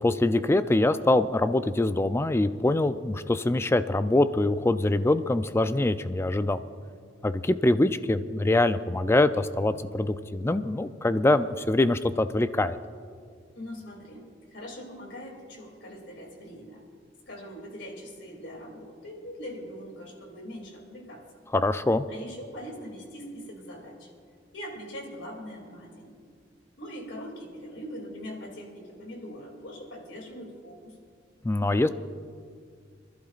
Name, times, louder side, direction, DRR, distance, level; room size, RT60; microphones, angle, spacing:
voice 1, 0.0-6.6 7.2-12.8 21.5-22.1 31.4-31.9, left 2 dB, 15° left, 12 dB, 0.3 m, -24 dB
voice 2, 13.6-14.2 14.5-16.8 17.3-21.2 22.1-24.1 24.5-26.2 26.8-31.0, equal, 75° left, 1 dB, 2.7 m, -42 dB
26.5 x 11.5 x 2.5 m, 2.1 s
head